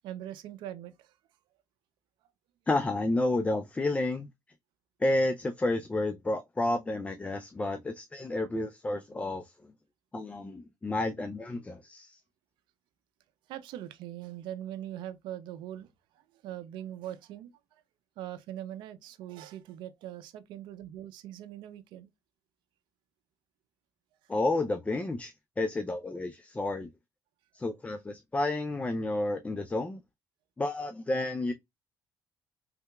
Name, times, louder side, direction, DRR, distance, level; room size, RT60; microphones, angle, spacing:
voice 1, 0.0-1.2 13.5-15.9 16.1-17.8 18.2-22.1, right 12 dB, 85° right, 0.5 m, -42 dB
voice 2, 2.7-4.3 5.0-9.7 10.1-12.2 24.3-26.9 27.5-30.0 30.6-31.5, left 2 dB, 15° left, 0.4 m, -31 dB
3.3 x 2.8 x 2.2 m
cardioid pair, 95°, 8 cm